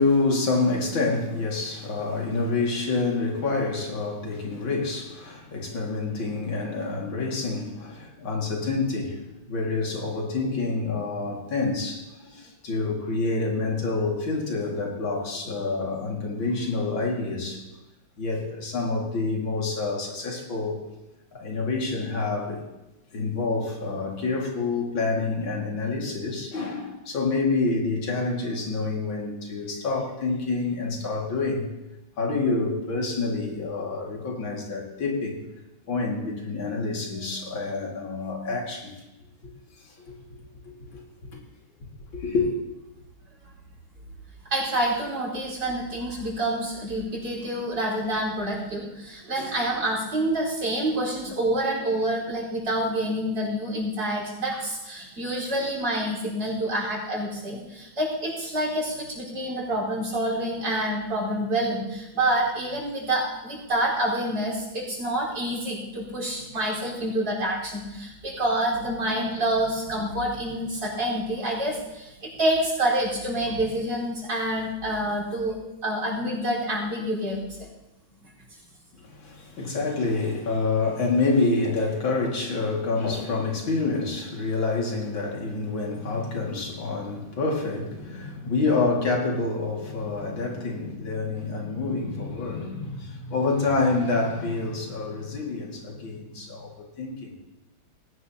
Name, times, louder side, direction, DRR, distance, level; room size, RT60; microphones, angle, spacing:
voice 1, 0.0-9.2 9.5-17.6 18.2-20.8 21.3-22.6 23.1-31.7 32.2-35.4 35.9-38.9 39.4-39.5 39.9-40.0 40.6-41.4 42.1-42.5 78.9-97.3, left 3 dB, 75° left, -1 dB, 3.1 m, -27 dB
voice 2, 44.5-75.6 75.8-77.4, right 1 dB, 60° right, -3 dB, 5.3 m, -27 dB
19.5 x 17.0 x 2.9 m, 0.98 s
omnidirectional pair, 2.1 m